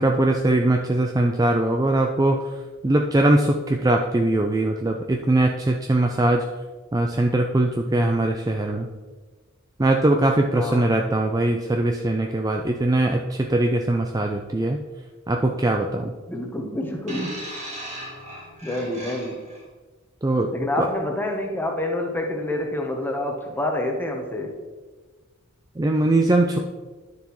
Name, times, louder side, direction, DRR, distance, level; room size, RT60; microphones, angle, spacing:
voice 1, 0.0-2.5 2.8-6.4 6.9-8.9 9.8-14.8 15.3-16.1 20.2-20.5 20.8-20.9 25.8-26.6, right 1 dB, 15° right, 2 dB, 0.4 m, -21 dB
voice 2, 10.5-10.9 16.3-17.4 18.6-19.5 20.5-24.6, left 1 dB, 10° left, 2 dB, 1.0 m, -27 dB
sound 1, 17.1-19.6 20.5-20.7, right 1 dB, 35° right, 1.8 m, -37 dB
10.5 x 6.8 x 3.1 m, 1.3 s
head